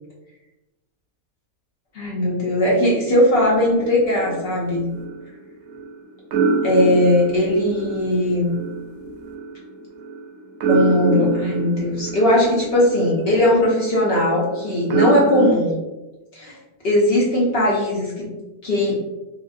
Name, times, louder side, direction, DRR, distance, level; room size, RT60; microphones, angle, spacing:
voice 1, 1.9-4.9 6.6-8.5 10.7-15.7 16.3-16.6 16.8-18.3 18.6-19.0, left 1 dB, 65° left, -4 dB, 0.6 m, -19 dB
sound 1, 3.3-5.9 6.3-15.5, right 3 dB, 70° right, 0.9 m, -26 dB
2.8 x 2.7 x 2.5 m, 1.1 s
omnidirectional pair, 1.8 m